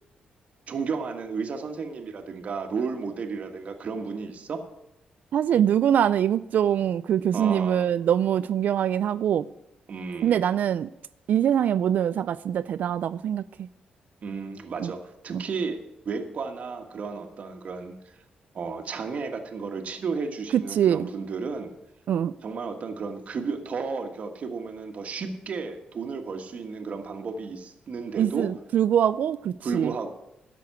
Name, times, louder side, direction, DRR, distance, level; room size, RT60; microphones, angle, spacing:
voice 1, 0.7-4.6 7.3-7.8 9.9-10.4 14.2-15.8 16.0-17.9 18.5-21.7 22.4-28.5 29.6-30.1, right 5 dB, 50° right, 4 dB, 1.5 m, -33 dB
voice 2, 5.3-9.4 10.2-10.9 11.3-13.7 14.8-14.9 15.3-15.4 20.5-21.1 22.1-22.3 28.2-29.9, right 9 dB, 65° right, 15 dB, 0.3 m, -23 dB
11.0 x 6.8 x 9.4 m, 0.86 s
cardioid pair, 125°, 3 cm